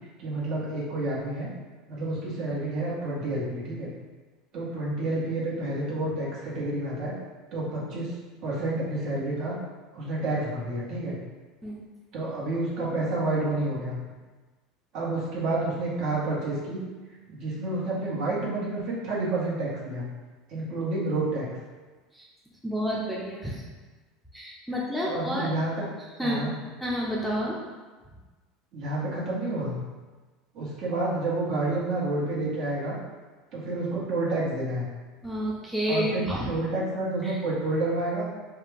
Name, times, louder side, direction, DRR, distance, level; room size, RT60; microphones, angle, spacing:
voice 1, 0.2-1.5 1.9-3.9 4.5-7.1 7.5-8.1 8.4-9.6 9.9-11.2 12.1-14.0 14.9-16.9 17.3-20.1 20.5-21.5 25.0-25.8 26.2-26.5 28.7-29.8 30.5-33.0 33.5-34.9 35.9-38.3, right 2 dB, 55° right, -6 dB, 1.5 m, -29 dB
voice 2, 22.6-23.6 24.3-25.5 26.2-26.5 26.8-27.6 28.1-28.2 35.2-36.5 37.2-37.4, equal, ahead, -5 dB, 0.6 m, -30 dB
4.7 x 2.3 x 3.4 m, 1.3 s
supercardioid pair, 125°, 0 cm